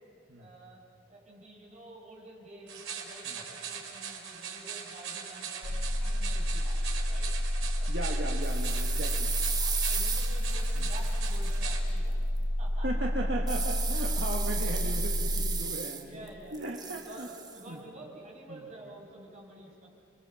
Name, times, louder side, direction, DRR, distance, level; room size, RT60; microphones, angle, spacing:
voice 1, 0.4-0.8 1.1-7.3 7.8-7.9 9.6-12.2 12.6-12.9 16.0-16.6 16.9-19.9, right 1 dB, 35° right, -3 dB, 6.8 m, -49 dB
sound 1, 2.7-11.8, right 7 dB, 85° right, 3.7 m, -41 dB
sound 2, 5.6-15.6, equal, 60° left, 1.0 m, -30 dB
voice 2, 7.9-9.4 10.7-10.9 12.8-17.3 17.7-17.8 18.5-18.6, right 1 dB, 55° right, 0 dB, 1.7 m, -37 dB
sound 3, 8.4-11.5 13.5-16.3 16.5-17.6, right 6 dB, 20° right, 1.2 m, -35 dB
29.5 x 23.0 x 7.1 m, 2.8 s
head